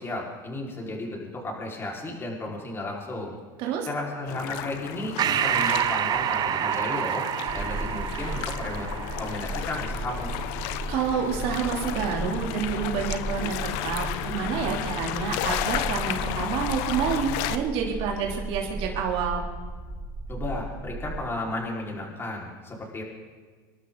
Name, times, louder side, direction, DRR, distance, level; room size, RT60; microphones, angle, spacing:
voice 1, 0.0-3.4 3.9-7.2 7.5-8.9 9.2-10.3 20.3-23.0, left 2 dB, 20° left, -3 dB, 4.8 m, -34 dB
sound 1, 4.3-17.6, left 12 dB, 65° left, 1.0 m, -33 dB
Breathing, 5.2-10.1, right 10 dB, 35° right, 0.5 m, -28 dB
sound 2, 7.5-21.3, right 3 dB, 15° right, 1.4 m, -35 dB
voice 2, 10.6-19.4, right 6 dB, 60° right, 0 dB, 3.1 m, -28 dB
26.0 x 12.0 x 4.0 m, 1.5 s
supercardioid pair, 105°, 11 cm